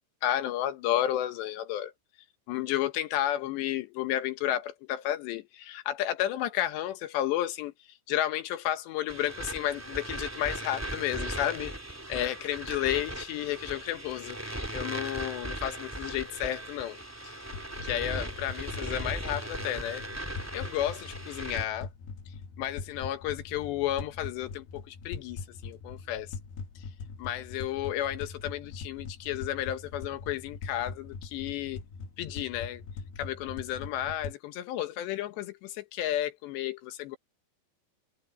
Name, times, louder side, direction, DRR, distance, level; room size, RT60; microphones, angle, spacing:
voice 1, 0.2-1.9 2.5-7.7 8.1-11.7 12.1-17.3 17.8-20.0 20.5-21.9 22.6-26.3 27.2-31.8 32.2-32.8 33.2-37.2, left 12 dB, 80° left, 3.3 m, -32 dB
sound 1, 9.1-21.7, right 1 dB, 5° right, 2.3 m, -38 dB
sound 2, 17.5-34.3, left 5 dB, 65° left, 3.6 m, -42 dB
omnidirectional pair, 5.1 m